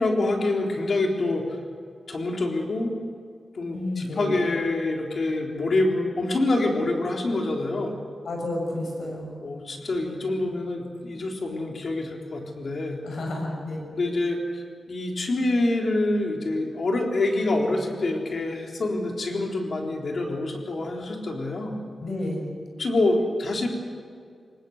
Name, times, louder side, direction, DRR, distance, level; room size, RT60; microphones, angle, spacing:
voice 1, 0.0-1.6 2.1-3.0 3.5-8.0 9.4-13.0 13.9-21.8 22.8-23.7, left 2 dB, 55° left, 1 dB, 3.8 m, -26 dB
voice 2, 3.7-4.4 8.2-9.4 13.0-13.8 22.0-22.5, left 1 dB, 80° left, 1 dB, 6.6 m, -30 dB
23.5 x 20.0 x 8.0 m, 2.1 s
wide cardioid pair, 125°, 0 cm